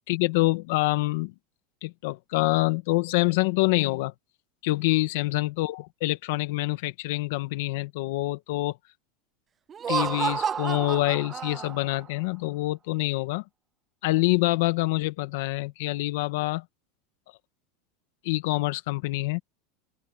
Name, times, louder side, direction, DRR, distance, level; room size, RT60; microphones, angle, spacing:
voice 1, 0.1-1.3 1.8-4.1 4.6-8.8 9.9-13.4 14.0-16.6 18.2-19.4, left 20 dB, 70° left, 1.6 m, -26 dB
Laughter, 9.7-12.0, right 7 dB, 20° right, 0.7 m, -30 dB
open air
supercardioid pair, 160°, 0 cm